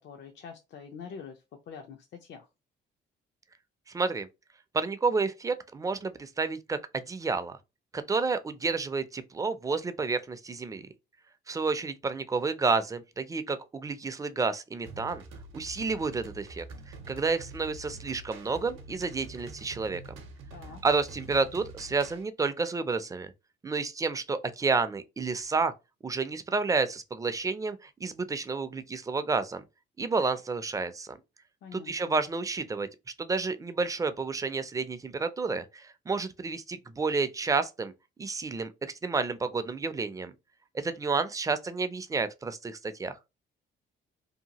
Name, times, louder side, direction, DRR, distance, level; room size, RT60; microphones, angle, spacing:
voice 1, 0.0-2.5 20.5-20.8 31.6-32.2, left 6 dB, 65° left, 0.5 m, -45 dB
voice 2, 3.9-4.3 4.7-7.6 7.9-10.9 11.5-15.2 15.5-20.0 20.8-23.3 23.6-25.7 26.0-29.6 30.0-31.2 31.7-32.9 33.2-37.9 38.2-40.3 40.7-43.2, right 4 dB, 15° right, 0.3 m, -30 dB
sound 1, 14.9-22.2, right 3 dB, 80° right, 0.6 m, -46 dB
2.8 x 2.2 x 2.8 m
cardioid pair, 90°, 20 cm